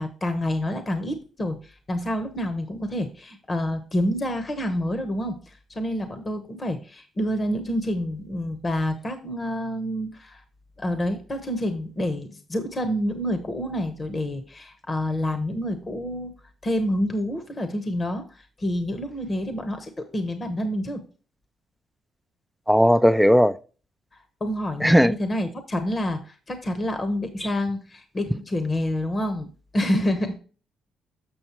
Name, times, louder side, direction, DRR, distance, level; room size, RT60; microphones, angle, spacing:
voice 1, 0.0-10.4 10.8-16.3 16.6-21.0 24.4-30.4, left 1 dB, 30° left, 0.9 m, -28 dB
voice 2, 22.7-23.6 24.8-25.1, equal, ahead, 0.4 m, -17 dB
7.1 x 6.3 x 3.0 m
cardioid pair, 90°, 0 cm